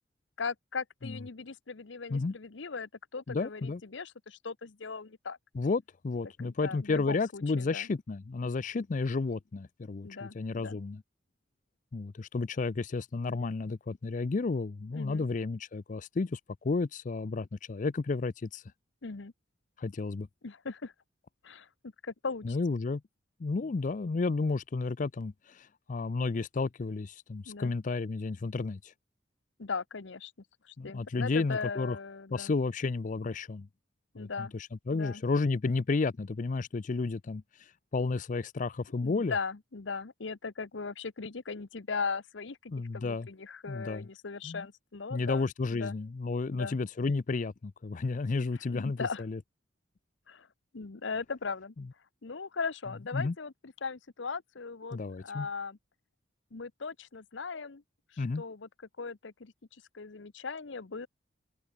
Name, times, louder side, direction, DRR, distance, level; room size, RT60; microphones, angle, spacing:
voice 1, 0.4-5.4 6.4-7.9 10.0-10.8 14.9-15.2 19.0-19.3 20.4-20.9 21.4-22.6 27.5-27.7 29.6-30.3 30.6-32.5 34.1-34.5 34.9-35.2 39.0-45.5 45.7-46.0 46.5-46.8 48.7-49.2 50.3-50.5 50.7-51.7 52.2-55.8 56.5-57.8 58.1-58.7 59.0-59.5 59.9-61.1, left 4 dB, 70° left, 0.9 m, -38 dB
voice 2, 3.3-3.8 5.5-11.0 11.9-18.6 19.8-20.3 22.4-23.0 23.4-28.9 30.8-32.0 32.3-33.7 34.2-39.3 42.7-43.3 43.7-44.1 44.4-44.7 45.1-49.4 51.8-51.9 53.1-53.3 54.9-55.5 58.2-58.4, left 3 dB, 40° left, 0.4 m, -32 dB
open air
head